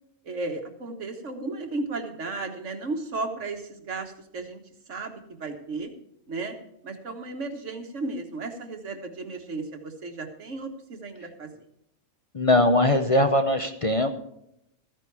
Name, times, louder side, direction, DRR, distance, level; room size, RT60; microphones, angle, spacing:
voice 1, 0.2-4.6 4.9-5.9 6.3-6.6 6.8-11.6, right 3 dB, 75° right, 5 dB, 1.8 m, -34 dB
voice 2, 12.3-14.1, left 1 dB, 35° left, 7 dB, 0.7 m, -21 dB
14.5 x 9.7 x 4.7 m, 0.77 s
omnidirectional pair, 1.3 m